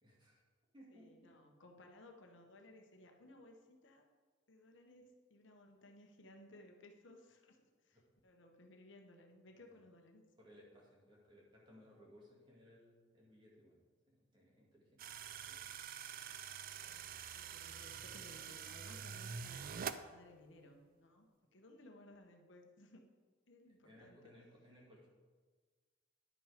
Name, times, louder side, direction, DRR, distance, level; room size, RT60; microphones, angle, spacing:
voice 1, 0.0-0.4 0.7-1.3 7.9-8.0 9.6-9.8 10.4-13.8 14.1-15.0 15.5-15.6 23.7-25.1, equal, 25° right, -4 dB, 2.5 m, -62 dB
voice 2, 0.9-4.1 4.5-10.2 16.8-23.0 23.5-24.3, left 1 dB, 80° left, 3 dB, 1.1 m, -60 dB
sound 1, 15.0-20.0, right 7 dB, 50° right, 0.4 m, -46 dB
10.5 x 6.0 x 5.1 m, 1.4 s
head